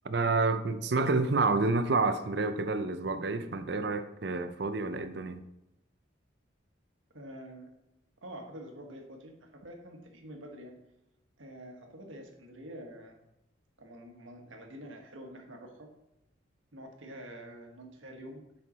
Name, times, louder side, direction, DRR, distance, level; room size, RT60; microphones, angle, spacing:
voice 1, 0.0-5.4, right 3 dB, 60° right, 0.5 m, -29 dB
voice 2, 7.1-7.7 8.2-10.8 11.4-13.2 13.8-15.9 16.7-18.4, right 1 dB, 90° right, 1.4 m, -47 dB
7.5 x 5.7 x 4.2 m
head